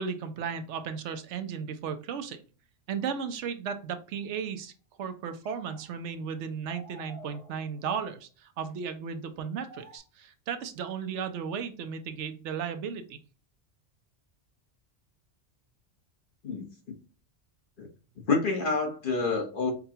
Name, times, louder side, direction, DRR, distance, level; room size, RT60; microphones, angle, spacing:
voice 1, 0.0-2.4 2.9-4.7 5.0-13.2, right 6 dB, 75° right, 9 dB, 0.9 m, -35 dB
sound 1, 4.1-4.4 5.4-6.3 6.7-8.0 8.7-8.8 9.7-10.0, right 1 dB, 5° left, 0.9 m, -51 dB
voice 2, 18.3-19.7, left 4 dB, 50° left, 1 dB, 1.1 m, -27 dB
4.8 x 2.3 x 2.7 m, 0.36 s
omnidirectional pair, 1.2 m